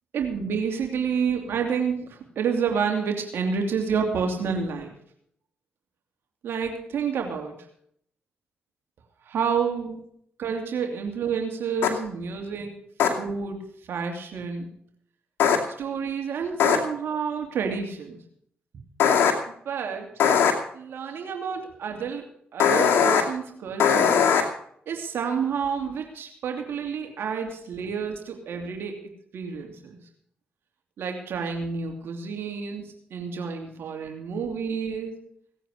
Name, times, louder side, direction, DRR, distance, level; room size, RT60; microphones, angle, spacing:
voice 1, 0.1-4.9 6.4-7.7 9.2-10.0 10.4-12.7 13.2-14.7 15.8-18.2 19.6-20.1 20.7-24.3 24.9-30.0 31.0-35.2, right 6 dB, 75° right, 3 dB, 2.8 m, -29 dB
sound 1, 11.8-11.9 13.0-13.1 15.4-15.6 16.6-16.8 19.0-19.3 20.2-20.5 22.6-23.2 23.8-24.4, left 7 dB, 80° left, 2.5 m, -19 dB
18.0 x 9.1 x 6.5 m, 0.66 s
supercardioid pair, 55°, 4 cm